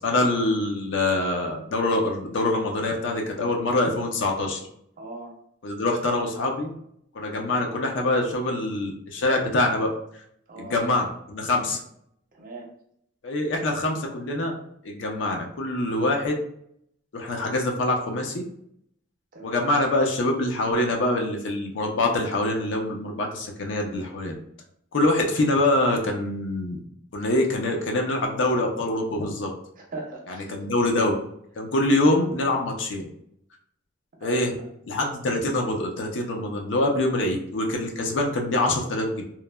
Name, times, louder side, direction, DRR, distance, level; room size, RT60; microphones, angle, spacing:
voice 1, 0.0-4.6 5.6-6.7 7.1-9.9 10.6-11.8 13.2-14.5 14.8-16.3 17.1-18.4 19.4-24.3 24.9-26.8 27.1-29.5 30.3-31.1 31.6-33.1 34.2-34.5 34.9-39.2, left 2 dB, 85° left, 1 dB, 0.5 m, -24 dB
voice 2, 5.0-5.3 10.5-10.7 12.3-12.7 19.3-19.7 29.8-30.5 34.2-34.7, right 3 dB, 50° right, 0 dB, 0.6 m, -39 dB
3.0 x 2.1 x 2.2 m, 0.70 s
head